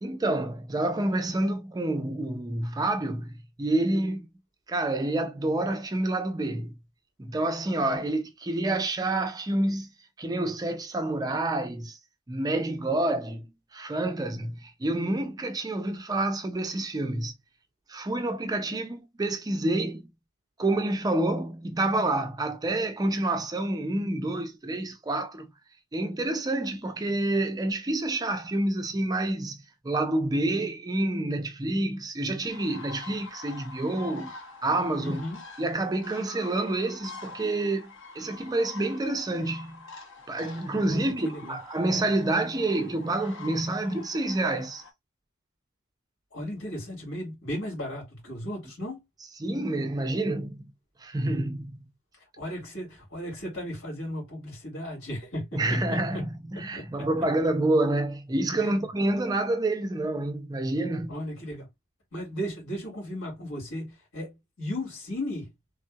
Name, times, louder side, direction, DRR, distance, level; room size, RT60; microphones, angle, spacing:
voice 1, 0.0-4.3 4.7-6.8 7.2-9.9 10.2-12.0 12.3-17.3 17.9-20.1 20.6-25.5 25.9-29.6 29.8-35.2 35.6-39.8 40.3-44.8 49.4-50.6 51.0-51.8 55.5-56.3 56.6-61.1, right 2 dB, 20° right, 0.4 m, -28 dB
sound 1, 32.5-44.9, left 3 dB, 55° left, 0.8 m, -45 dB
voice 2, 35.0-35.4 40.9-41.6 46.3-49.1 52.2-56.3 56.6-57.1 58.6-58.9 61.1-61.7 62.1-65.5, equal, 80° left, 2.3 m, -36 dB
3.4 x 2.7 x 2.2 m
head